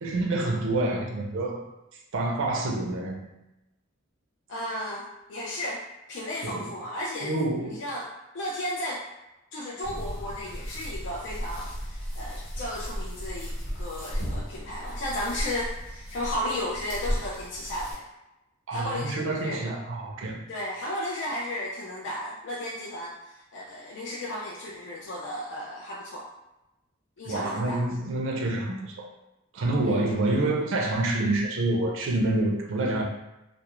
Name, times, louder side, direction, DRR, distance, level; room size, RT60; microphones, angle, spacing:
voice 1, 0.0-1.7 2.1-3.3 6.4-6.7 7.2-7.8 18.7-20.4 27.2-29.1 29.5-33.0, right 2 dB, 65° right, 0 dB, 0.5 m, -27 dB
voice 2, 4.5-5.8 6.1-7.3 7.7-8.1 8.3-9.0 9.5-18.1 18.7-19.6 20.5-26.3 27.2-27.8 29.8-30.0, left 1 dB, 60° left, -5 dB, 0.4 m, -34 dB
sound 1, 9.8-17.9, equal, 75° left, 1.0 m, -35 dB
2.3 x 2.1 x 2.9 m, 0.94 s
head